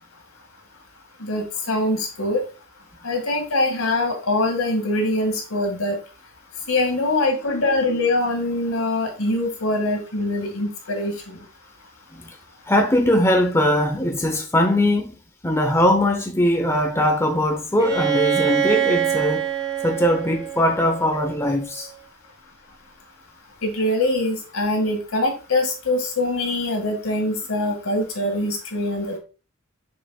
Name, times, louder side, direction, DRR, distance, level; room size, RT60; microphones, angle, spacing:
voice 1, 1.2-2.4 3.0-6.0 6.7-11.4 23.6-29.2, left 2 dB, 80° left, 2.2 m, -23 dB
voice 2, 12.7-15.2 15.4-19.5 19.8-21.9, left 1 dB, 15° left, 0.9 m, -20 dB
Bowed string instrument, 17.8-21.6, right 10 dB, 15° right, 1.2 m, -24 dB
6.7 x 6.5 x 2.4 m
head